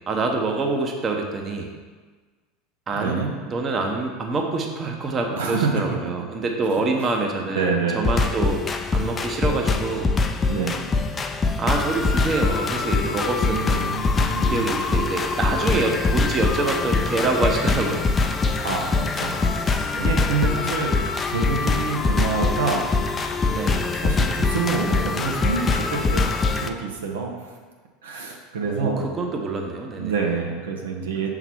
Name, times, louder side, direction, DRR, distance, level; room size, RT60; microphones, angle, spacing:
voice 1, 0.0-1.7 2.9-3.2 3.5-8.6 8.9-10.3 11.6-13.9 14.5-18.0 20.0-20.2 23.5-23.9 28.6-30.1, right 3 dB, 30° right, 2 dB, 0.9 m, -26 dB
voice 2, 2.9-3.3 5.4-5.7 7.5-8.1 10.5-10.8 13.4-14.6 18.6-20.9 21.3-22.8 23.1-23.3 23.9-27.6 28.0-29.1 30.0-31.3, right 5 dB, 80° right, 1 dB, 0.8 m, -27 dB
sound 1, 8.0-26.7, left 4 dB, 25° left, 0.4 m, -23 dB
5.8 x 3.9 x 4.4 m, 1.4 s
hypercardioid pair, 80°, 0 cm